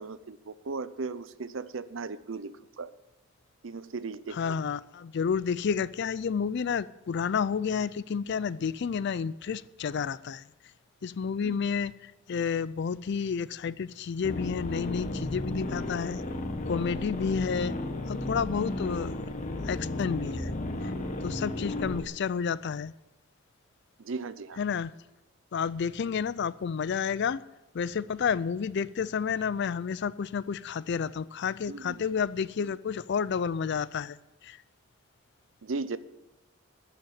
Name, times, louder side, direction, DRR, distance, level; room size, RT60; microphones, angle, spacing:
voice 1, 0.0-2.9 3.6-4.6 11.4-11.6 24.0-24.6 31.7-32.0 35.6-36.0, right 4 dB, 65° right, 0.6 m, -37 dB
voice 2, 4.3-10.4 11.0-16.2 16.7-17.8 18.1-19.2 19.6-20.5 20.8-20.9 21.2-22.9 24.6-24.9 25.5-27.4 27.7-34.2 34.4-34.6, left 6 dB, 55° left, 0.4 m, -30 dB
sound 1, 14.2-22.0, left 1 dB, 40° left, 1.0 m, -34 dB
13.0 x 5.9 x 9.3 m
head